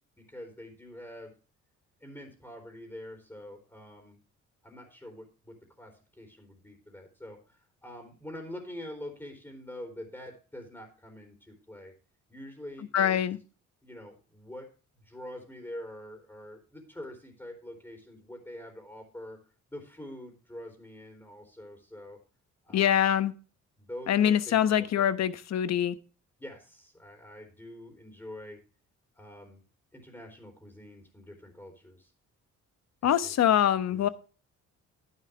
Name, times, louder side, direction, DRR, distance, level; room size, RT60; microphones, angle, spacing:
voice 1, 0.2-1.3 2.0-4.2 4.6-11.9 12.3-13.2 13.8-14.7 14.9-19.4 19.7-22.2 22.6-23.1 23.8-25.1 26.4-28.6 29.1-29.6 29.9-32.1 33.0-33.3 33.9-34.1, left 1 dB, 10° left, 2 dB, 3.6 m, -45 dB
voice 2, 12.9-13.4 22.7-23.3 24.1-26.0 33.0-34.1, left 10 dB, 60° left, 14 dB, 1.0 m, -24 dB
11.0 x 11.0 x 3.3 m, 0.35 s
cardioid pair, 90°, 30 cm